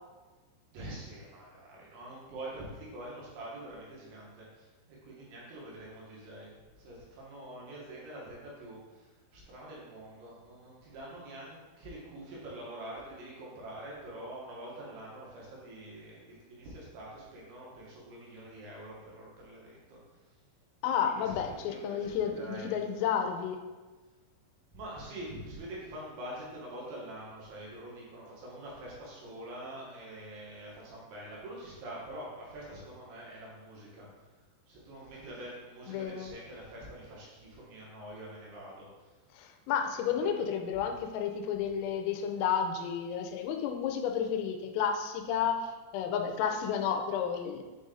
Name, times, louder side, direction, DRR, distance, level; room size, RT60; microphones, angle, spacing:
voice 1, 0.7-20.0 21.0-22.8 24.7-34.1 34.7-39.1 40.1-40.3 40.7-40.9, right 1 dB, 70° right, -5 dB, 3.5 m, -45 dB
voice 2, 20.8-23.6 35.9-36.3 39.3-47.6, left 7 dB, 90° left, 4 dB, 3.3 m, -31 dB
7.7 x 4.1 x 3.8 m, 1.3 s
omnidirectional pair, 5.8 m